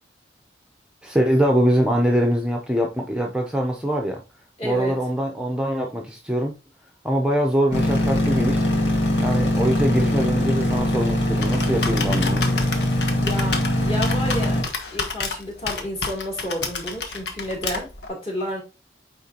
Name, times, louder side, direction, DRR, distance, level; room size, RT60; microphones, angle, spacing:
voice 1, 1.0-4.2 4.6-6.5 7.0-8.7 9.2-12.5, equal, 5° right, 0.7 m, -23 dB
voice 2, 4.6-4.9 13.2-14.6 14.9-18.6, left 1 dB, 35° left, 3.0 m, -31 dB
sound 1, 7.7-14.6, left 1 dB, 90° left, 1.9 m, -22 dB
Computer keyboard, 10.8-18.1, left 4 dB, 70° left, 1.2 m, -31 dB
9.0 x 3.8 x 2.9 m
head